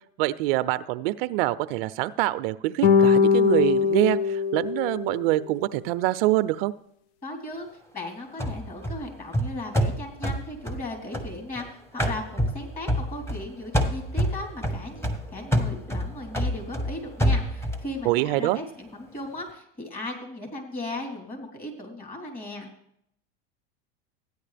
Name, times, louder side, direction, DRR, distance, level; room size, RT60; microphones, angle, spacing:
voice 1, 0.2-6.7 18.1-18.6, right 17 dB, 65° right, 15 dB, 0.5 m, -25 dB
sound 1, 2.8-5.4, left 6 dB, 70° left, 0.7 m, -21 dB
voice 2, 7.2-7.7 7.9-22.7, left 2 dB, 25° left, 0 dB, 3.5 m, -37 dB
sound 2, 8.4-11.6 12.0-13.5 13.7-17.9, equal, 10° left, 1.2 m, -27 dB
14.0 x 9.6 x 3.4 m, 0.69 s
supercardioid pair, 110°, 31 cm